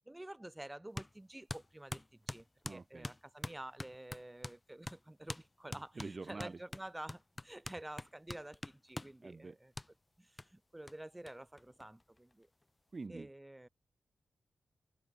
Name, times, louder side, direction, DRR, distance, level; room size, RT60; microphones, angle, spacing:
voice 1, 0.1-9.7 10.2-12.5 13.1-13.7, right 1 dB, 10° right, 0.9 m, -50 dB
sound 1, 1.0-1.1 1.5-4.6 4.9-5.0 5.3-5.5 5.7-9.2 9.8-9.9 10.4-10.5 10.9-11.0 11.3-11.4 11.6-12.3, left 2 dB, 20° left, 0.7 m, -44 dB
voice 2, 2.6-3.1 5.7-6.6 9.2-9.6 12.9-13.3, right 3 dB, 35° right, 0.5 m, -46 dB
wide cardioid pair, 115°, 0 cm